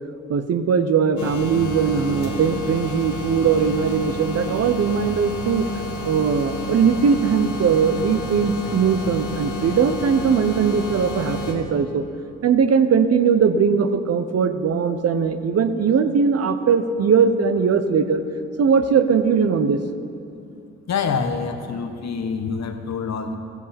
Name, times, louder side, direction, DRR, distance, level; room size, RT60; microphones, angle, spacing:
voice 1, 0.3-5.6 6.0-12.0 12.4-18.2 18.6-19.8, right 6 dB, 50° right, 9 dB, 0.8 m, -20 dB
sound 1, 1.2-11.5, left 1 dB, 80° left, 1.7 m, -30 dB
voice 2, 20.9-23.3, left 5 dB, 60° left, 6 dB, 1.1 m, -26 dB
14.5 x 8.2 x 4.3 m, 2.6 s
supercardioid pair, 60°, 31 cm